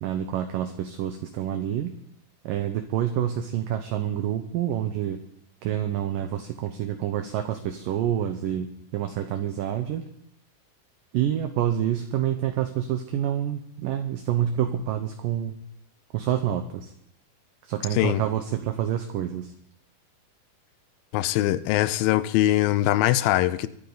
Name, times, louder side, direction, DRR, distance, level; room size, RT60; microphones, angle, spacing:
voice 1, 0.0-1.9 2.4-5.2 5.6-10.1 11.1-15.6 16.1-16.9 17.6-19.5, right 10 dB, 70° right, 2.3 m, -27 dB
voice 2, 21.1-23.7, left 14 dB, 75° left, 2.3 m, -22 dB
23.5 x 10.5 x 4.0 m
omnidirectional pair, 4.6 m